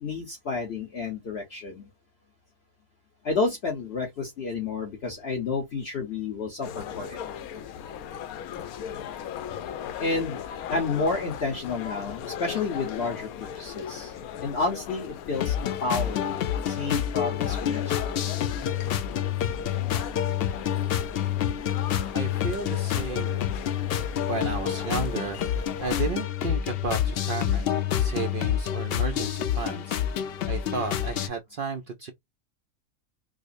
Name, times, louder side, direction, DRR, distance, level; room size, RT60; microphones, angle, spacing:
voice 1, 0.0-1.9 3.2-7.2 10.0-10.4 10.7-14.2 14.4-16.4 16.7-18.2, left 4 dB, 50° left, 1.0 m, -30 dB
sound 1, 6.6-26.1, left 8 dB, 85° left, 1.1 m, -38 dB
sound 2, 15.3-31.3, left 10 dB, 70° left, 0.5 m, -28 dB
voice 2, 22.1-23.5 24.3-27.7 28.0-32.1, right 5 dB, 70° right, 0.5 m, -33 dB
4.8 x 2.0 x 2.5 m
omnidirectional pair, 1.5 m